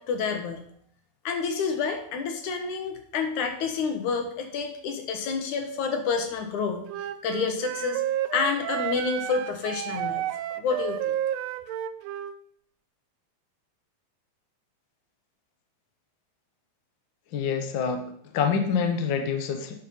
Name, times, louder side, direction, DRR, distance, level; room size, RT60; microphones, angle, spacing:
voice 1, 0.1-0.6 1.2-6.8 7.2-8.0 8.3-10.3 10.6-11.1, left 5 dB, 80° left, 5 dB, 2.7 m, -28 dB
Wind instrument woodwind instrument, 6.9-12.4, right 11 dB, 85° right, 1.4 m, -31 dB
voice 2, 17.3-18.0 18.3-19.8, left 6 dB, 55° left, 5 dB, 1.4 m, -26 dB
8.8 x 7.6 x 5.6 m, 0.67 s
omnidirectional pair, 3.4 m